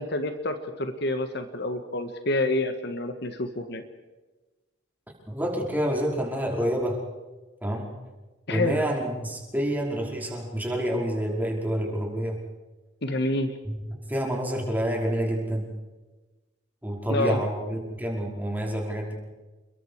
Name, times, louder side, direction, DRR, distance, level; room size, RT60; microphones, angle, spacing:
voice 1, 0.0-3.8 8.5-8.8 13.0-13.6 17.1-17.4, left 2 dB, 55° left, 7 dB, 1.8 m, -28 dB
voice 2, 5.3-7.0 7.6-7.9 8.5-12.4 13.6-15.7 16.8-19.1, equal, 10° right, -1 dB, 5.1 m, -28 dB
29.5 x 22.5 x 4.9 m, 1.2 s
head